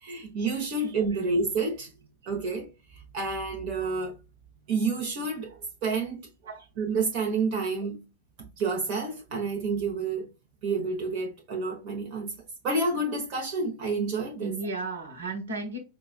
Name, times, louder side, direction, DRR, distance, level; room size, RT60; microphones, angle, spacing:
voice 1, 0.0-1.9 2.3-2.7 3.1-4.1 4.7-6.2 6.8-8.0 8.6-10.3 10.6-12.3 12.6-14.5, right 3 dB, 45° right, 0.9 m, -29 dB
voice 2, 14.4-15.8, right 3 dB, 70° right, 1.3 m, -35 dB
5.0 x 2.4 x 2.3 m
figure-of-eight pair, 90°, 0 cm